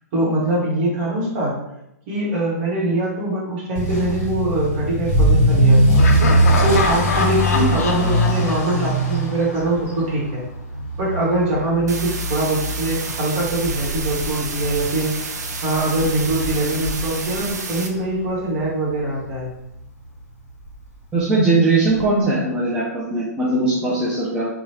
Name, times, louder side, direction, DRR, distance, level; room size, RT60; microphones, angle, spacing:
voice 1, 0.1-1.5 2.1-6.0 6.6-10.4 11.0-19.5 24.0-24.1, right 1 dB, 40° right, -5 dB, 1.3 m, -23 dB
Motor vehicle (road) / Accelerating revving vroom, 3.8-18.6 18.9-19.3 19.8-19.9 20.2-20.3 20.6-20.7 22.0-22.1, right 1 dB, 35° left, 1.5 m, -21 dB
Laughter, 6.0-9.8, left 4 dB, 60° left, 0.5 m, -25 dB
sound 1, 11.9-17.9, right 4 dB, 75° right, 0.5 m, -31 dB
voice 2, 21.1-24.5, right 2 dB, 10° right, -7 dB, 0.6 m, -20 dB
3.0 x 2.4 x 2.9 m, 0.84 s
figure-of-eight pair, 115°, 9 cm